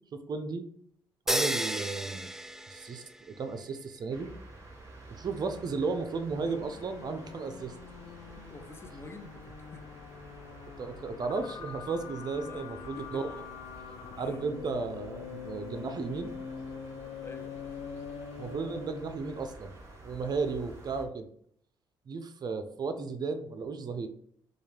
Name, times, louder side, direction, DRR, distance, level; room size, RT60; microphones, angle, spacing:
voice 1, 0.1-0.7 1.3-2.3 2.7-4.3 5.1-7.7 10.8-13.3 14.2-16.3 18.4-19.8 20.0-21.3 22.1-24.1, right 4 dB, 50° right, 8 dB, 0.6 m, -34 dB
sound 1, 1.3-3.4, right 1 dB, 5° right, 0.3 m, -32 dB
sound 2, 4.1-21.0, right 2 dB, 30° right, 1.5 m, -50 dB
sound 3, 6.5-19.2, left 7 dB, 80° left, 0.5 m, -44 dB
voice 2, 8.4-9.3 9.7-9.9 12.3-12.6 13.0-13.4 14.1-14.4 17.2-17.6, left 2 dB, 25° left, 7 dB, 0.7 m, -47 dB
6.2 x 2.4 x 3.4 m, 0.65 s
supercardioid pair, 75°, 9 cm